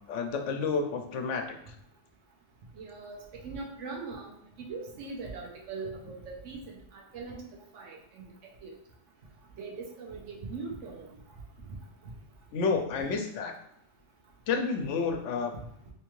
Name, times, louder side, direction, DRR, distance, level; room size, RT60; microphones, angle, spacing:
voice 1, 0.1-1.8 12.5-13.5 14.5-15.5, left 4 dB, 85° left, 5 dB, 0.9 m, -30 dB
voice 2, 2.8-4.3 4.7-7.4 7.7-8.2 8.6-8.7 9.6-11.1, right 4 dB, 85° right, 1 dB, 1.1 m, -40 dB
3.3 x 3.2 x 3.1 m, 0.74 s
omnidirectional pair, 1.2 m